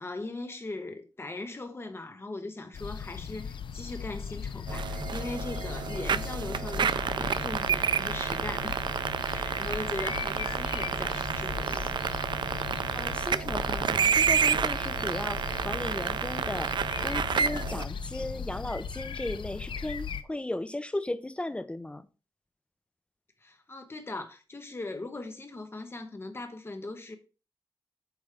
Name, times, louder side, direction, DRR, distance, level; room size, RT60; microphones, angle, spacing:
voice 1, 0.0-8.8 9.2-11.9 23.4-27.2, left 2 dB, 30° left, 1.0 m, -39 dB
sound 1, 2.7-20.2, left 6 dB, 85° left, 0.5 m, -38 dB
sound 2, 4.7-17.8, right 7 dB, 70° right, 0.3 m, -29 dB
sound 3, 12.8-19.0, equal, 20° right, 1.4 m, -51 dB
voice 2, 12.9-16.7 17.0-22.1, left 1 dB, 15° left, 0.5 m, -36 dB
8.3 x 3.1 x 4.9 m
wide cardioid pair, 130°, 8 cm